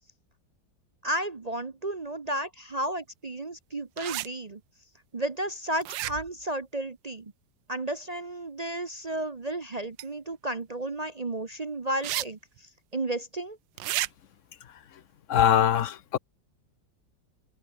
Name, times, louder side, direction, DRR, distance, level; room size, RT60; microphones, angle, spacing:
voice 1, 1.0-4.6 5.1-7.3 7.7-12.4 12.9-13.6, right 1 dB, 35° right, 0.6 m, -33 dB
sound 1, 4.0-4.3 5.8-6.4 10.0-10.1 12.0-12.3 12.6-12.7 13.8-14.1, right 16 dB, 85° right, 1.4 m, -31 dB
voice 2, 15.3-16.2, left 10 dB, 60° left, 0.9 m, -22 dB
omnidirectional pair, 2.0 m